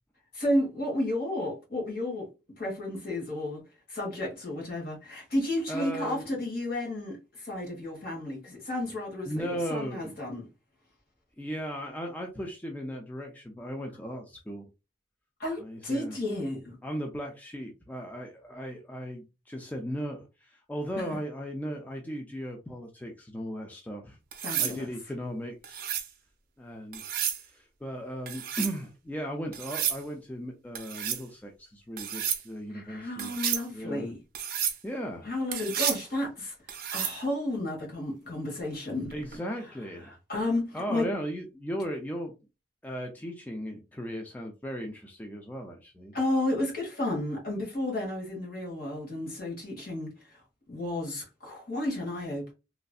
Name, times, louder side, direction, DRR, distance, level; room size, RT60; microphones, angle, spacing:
voice 1, 0.3-2.3 2.6-3.6 3.9-10.5 15.4-16.7 21.0-21.1 24.4-24.9 32.7-34.2 35.2-36.5 36.9-39.1 40.1-41.1 46.1-50.4 50.7-52.5, left 1 dB, 55° left, 1.6 m, -32 dB
voice 2, 5.7-6.3 9.3-10.2 11.4-14.7 15.6-16.2 16.8-24.2 24.6-25.8 26.6-27.1 27.4-33.3 33.7-34.1 34.8-35.3 39.1-40.1 40.7-42.3 42.8-46.1, equal, 10° left, 0.4 m, -37 dB
sound 1, 24.3-24.8 25.6-26.1 26.9-27.4 28.3-28.8 29.5-30.0 30.8-31.2 32.0-32.4 33.2-33.7 34.4-34.8 35.5-36.0 36.7-37.2 39.1-39.4, right 9 dB, 55° right, 0.7 m, -31 dB
3.1 x 2.6 x 2.4 m
head